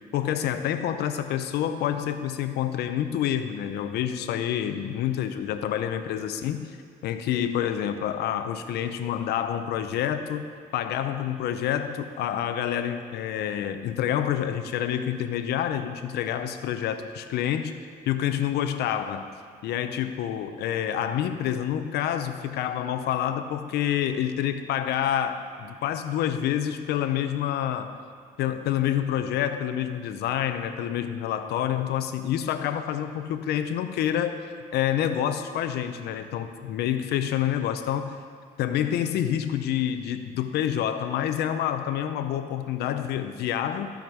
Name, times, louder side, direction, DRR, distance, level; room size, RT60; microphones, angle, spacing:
voice 1, 0.1-6.8 7.0-10.5 10.7-17.8 18.1-19.3 19.6-28.0 28.4-34.3 34.7-38.2 38.6-43.9, left 10 dB, 75° left, 8 dB, 0.7 m, -28 dB
14.5 x 5.2 x 4.6 m, 2.2 s
cardioid pair, 110°, 17 cm